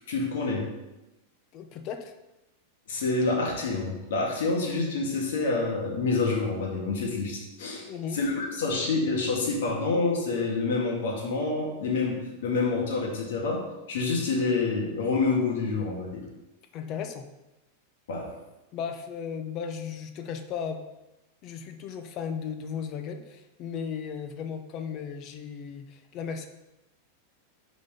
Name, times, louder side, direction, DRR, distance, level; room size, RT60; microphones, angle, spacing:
voice 1, 0.1-0.7 2.9-7.9 8.1-16.2 18.1-18.4, left 3 dB, 80° left, -1 dB, 1.7 m, -27 dB
voice 2, 1.5-2.1 7.9-8.2 16.7-17.2 18.7-20.8 21.4-26.5, left 7 dB, 35° left, 7 dB, 0.6 m, -35 dB
5.4 x 4.1 x 5.2 m, 0.98 s
supercardioid pair, 155°, 0 cm